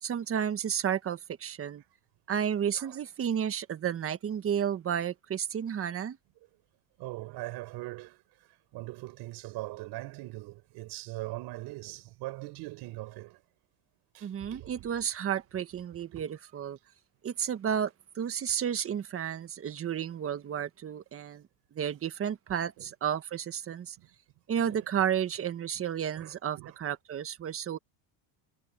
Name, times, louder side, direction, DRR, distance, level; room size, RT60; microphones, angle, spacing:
voice 1, 0.0-1.8 2.3-6.2 14.2-16.8 17.2-21.5 21.7-24.0 24.5-27.8, right 9 dB, 30° right, 1.6 m, -32 dB
voice 2, 7.0-8.2 8.7-13.4 14.1-14.9 16.1-16.2 22.8-22.9 24.0-24.1 24.7-24.9 25.7-25.9 26.1-26.8, right 19 dB, 65° right, 4.5 m, -41 dB
cardioid pair, 130°, 41 cm